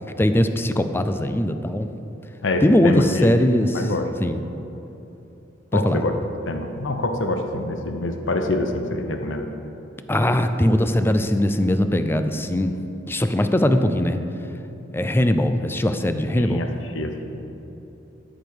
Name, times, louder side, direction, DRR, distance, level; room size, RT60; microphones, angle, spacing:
voice 1, 0.2-1.9 2.6-3.9 4.2-4.4 5.7-6.1 10.1-12.7 13.1-14.2 14.9-16.6, left 1 dB, 10° left, 8 dB, 0.4 m, -20 dB
voice 2, 2.4-3.3 3.7-4.1 5.7-6.1 6.5-9.5 16.4-16.7 16.9-17.1, left 2 dB, 70° left, 5 dB, 0.8 m, -25 dB
13.0 x 5.3 x 6.1 m, 3.0 s
head